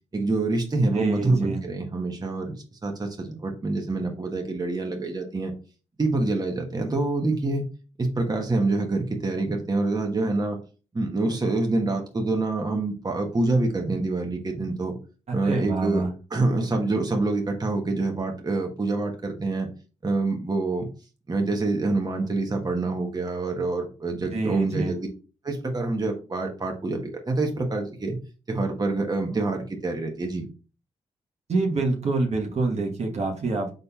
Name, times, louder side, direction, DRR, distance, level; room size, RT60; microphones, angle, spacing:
voice 1, 0.1-2.6 2.8-5.5 6.0-7.6 8.0-10.6 10.9-14.9 15.3-16.0 16.3-19.7 20.0-20.9 21.3-25.1 25.4-28.2 28.5-30.4, right 2 dB, 35° right, 3 dB, 1.1 m, -26 dB
voice 2, 0.9-1.6 15.3-16.1 24.3-24.9 31.5-33.7, right 3 dB, 65° right, 1 dB, 1.2 m, -26 dB
5.1 x 4.0 x 2.3 m, 0.35 s
cardioid pair, 50°, 12 cm